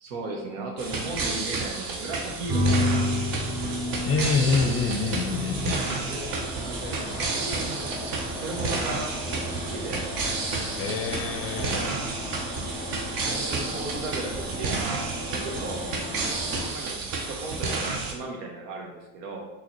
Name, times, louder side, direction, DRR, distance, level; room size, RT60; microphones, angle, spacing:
voice 1, 0.0-3.0 6.0-10.2 13.1-15.9 16.5-19.4, right 2 dB, 85° right, 2 dB, 0.9 m, -36 dB
sound 1, 0.8-18.1, right 3 dB, 50° right, 0.8 m, -31 dB
sound 2, 2.5-13.5, left 1 dB, 35° right, 1.1 m, -33 dB
sound 3, 2.9-16.7, equal, 5° right, 1.1 m, -37 dB
voice 2, 4.0-5.9 10.8-11.9, left 4 dB, 35° left, 5 dB, 0.5 m, -26 dB
3.9 x 3.0 x 3.0 m, 1.1 s
supercardioid pair, 75°, 44 cm